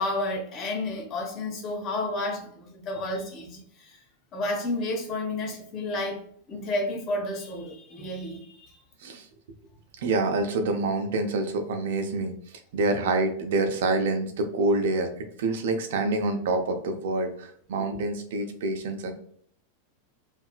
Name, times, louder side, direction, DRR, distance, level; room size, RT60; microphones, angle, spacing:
voice 1, 0.0-4.0 4.3-6.2 6.5-8.7, left 2 dB, 35° left, 1 dB, 0.7 m, -31 dB
voice 2, 10.0-12.3 12.7-15.1 15.4-19.1, right 2 dB, 55° right, 7 dB, 0.4 m, -26 dB
2.7 x 2.3 x 2.3 m, 0.63 s
figure-of-eight pair, 90°, 0 cm